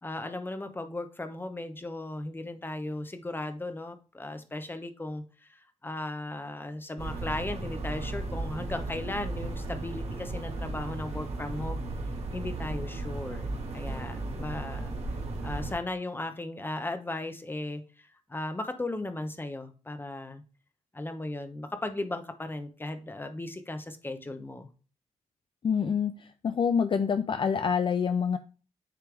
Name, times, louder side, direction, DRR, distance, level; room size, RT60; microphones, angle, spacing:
voice 1, 0.0-11.8 12.3-14.9 15.4-20.4 20.9-24.7, left 2 dB, 20° left, 8 dB, 0.8 m, -36 dB
sound 1, 7.0-15.7, right 2 dB, 65° right, 1.5 m, -35 dB
voice 2, 25.6-26.1 26.4-28.4, left 6 dB, 45° left, 10 dB, 0.4 m, -26 dB
9.2 x 3.4 x 3.4 m, 0.35 s
cardioid pair, 85°, 12 cm